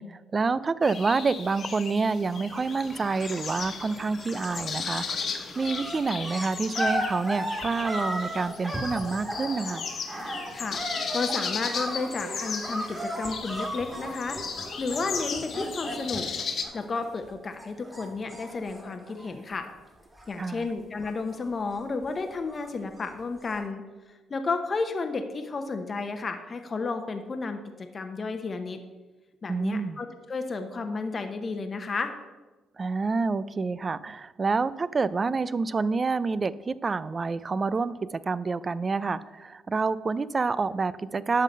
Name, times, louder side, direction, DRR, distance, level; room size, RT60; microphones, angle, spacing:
voice 1, 0.0-5.3 5.6-9.9 20.4-20.7 29.5-30.0 32.8-41.4, right 4 dB, 35° right, 17 dB, 0.3 m, -28 dB
sound 1, 0.8-16.6, left 5 dB, 55° left, 1.1 m, -36 dB
Sink (filling or washing), 2.6-7.5, left 1 dB, 10° left, 0.8 m, -46 dB
sound 2, 4.3-4.7 5.0-17.3 17.6-19.7 20.0-20.7 21.0-22.8 23.5-23.6, equal, 10° right, 2.0 m, -35 dB
voice 2, 11.1-16.3 16.7-19.7 20.3-23.8 24.3-28.8 29.4-32.1, left 4 dB, 40° left, 6 dB, 0.8 m, -32 dB
11.0 x 3.8 x 6.7 m, 1.2 s
cardioid pair, 90°, 0 cm